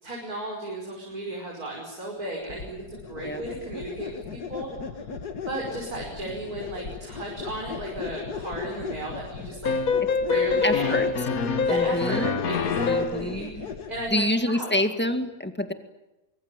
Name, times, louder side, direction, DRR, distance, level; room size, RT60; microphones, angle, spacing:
voice 1, 0.0-5.2 5.4-9.9 10.2-11.0 11.6-14.8, right 1 dB, 70° right, -1 dB, 6.1 m, -35 dB
sound 1, 2.5-14.1, left 5 dB, 80° left, 2.3 m, -37 dB
sound 2, 9.6-13.3, left 5 dB, 65° left, 1.7 m, -25 dB
voice 2, 10.6-11.1 11.7-12.4 12.8-13.7 14.1-15.7, left 1 dB, 5° left, 7 dB, 2.0 m, -27 dB
24.5 x 23.5 x 9.1 m, 0.99 s
omnidirectional pair, 1.7 m